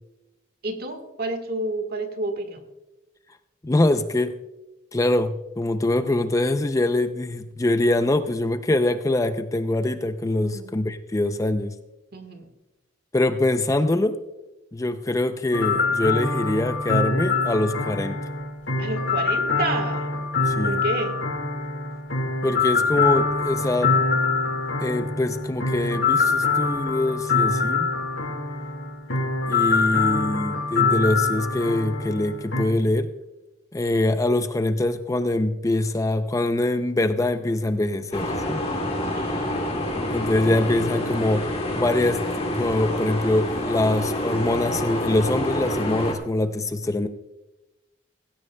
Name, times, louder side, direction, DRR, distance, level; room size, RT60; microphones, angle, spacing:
voice 1, 0.6-2.6 10.4-10.8 12.1-12.5 18.8-20.1 20.6-21.2 39.0-39.8, right 2 dB, 50° right, 7 dB, 1.5 m, -30 dB
voice 2, 3.6-4.3 4.9-11.7 13.1-14.2 14.7-18.2 20.5-20.8 22.4-23.9 24.8-27.9 29.5-33.1 33.7-38.6 40.1-47.1, left 2 dB, 15° left, 10 dB, 0.4 m, -24 dB
sound 1, 15.5-32.6, left 4 dB, 65° left, 1.6 m, -24 dB
sound 2, 38.1-46.1, left 1 dB, 30° left, 2.4 m, -27 dB
17.0 x 16.0 x 2.2 m, 1.0 s
head